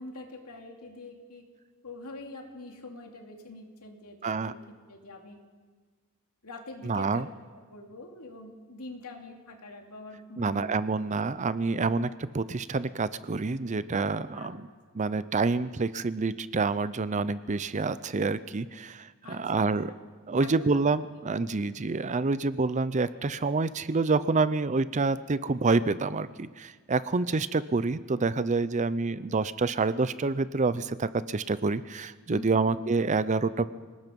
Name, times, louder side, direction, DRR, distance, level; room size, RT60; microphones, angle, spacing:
voice 1, 0.0-1.4 1.8-5.4 6.4-7.2 7.5-10.7 11.9-12.0 14.3-14.6 19.2-20.0 20.3-21.2 32.3-32.7, left 2 dB, 85° left, 2 dB, 2.8 m, -45 dB
voice 2, 4.2-4.5 6.9-7.3 10.4-12.1 12.3-14.7 15.0-19.9 20.3-33.7, right 3 dB, 30° right, 15 dB, 0.5 m, -27 dB
27.0 x 19.0 x 5.3 m, 1.5 s
head